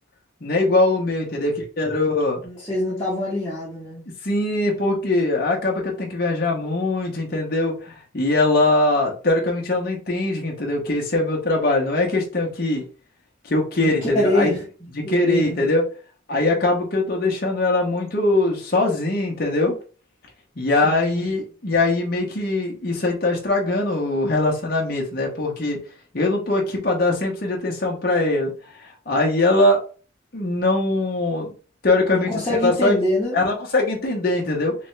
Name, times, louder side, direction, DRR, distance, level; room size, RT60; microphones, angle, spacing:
voice 1, 0.4-2.4 4.2-12.8 13.4-14.5 14.9-15.8 16.3-19.8 20.6-25.8 26.1-28.5 28.8-29.8 30.3-31.5 31.8-33.0 33.3-34.7, left 2 dB, 50° left, -1 dB, 0.9 m, -21 dB
voice 2, 2.4-4.0 13.8-15.6 20.8-21.3 32.1-33.4, left 1 dB, 15° left, -8 dB, 1.1 m, -25 dB
3.3 x 3.3 x 3.2 m, 0.37 s
head